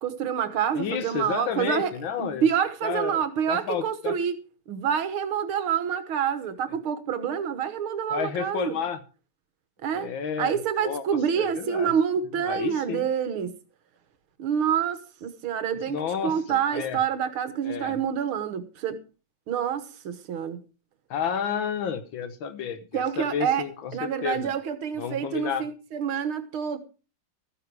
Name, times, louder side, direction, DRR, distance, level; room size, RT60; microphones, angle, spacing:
voice 1, 0.0-1.9 2.2-4.4 4.7-8.8 9.8-10.1 10.4-13.6 14.4-19.0 19.5-20.6 22.9-23.7 23.9-26.8, right 8 dB, 80° right, 2.1 m, -27 dB
voice 2, 0.7-2.5 2.8-4.2 8.1-9.0 9.9-11.0 11.4-11.9 12.4-13.0 15.9-17.0 17.6-18.0 21.1-24.5 25.0-25.6, left 7 dB, 70° left, 1.8 m, -31 dB
14.0 x 9.5 x 4.7 m
omnidirectional pair, 2.3 m